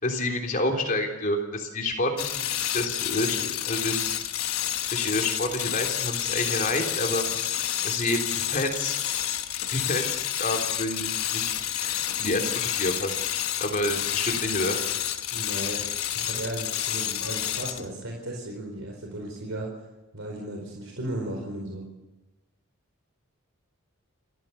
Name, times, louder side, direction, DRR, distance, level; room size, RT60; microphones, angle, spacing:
voice 1, 0.0-4.2 4.9-7.3 7.8-9.0 9.7-13.2 13.6-14.8, left 1 dB, 40° left, 2 dB, 3.6 m, -29 dB
sound 1, 2.2-17.9, left 11 dB, 85° left, 1.3 m, -29 dB
voice 2, 15.3-19.7 20.1-21.8, right 1 dB, 65° right, 0 dB, 4.6 m, -35 dB
28.0 x 15.0 x 7.1 m, 1.1 s
head